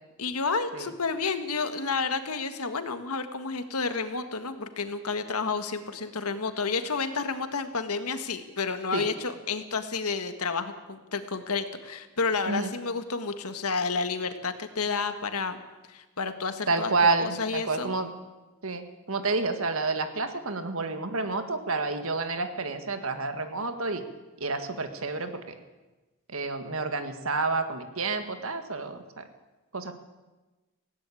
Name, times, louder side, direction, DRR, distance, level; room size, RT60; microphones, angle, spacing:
voice 1, 0.2-15.6 15.9-16.9 17.2-17.9, left 4 dB, 90° left, 9 dB, 1.7 m, -30 dB
voice 2, 16.7-18.1 18.6-24.0 24.4-25.6 26.3-29.3 29.7-29.9, right 3 dB, 70° right, 8 dB, 1.8 m, -29 dB
18.0 x 16.5 x 8.5 m, 1.1 s
head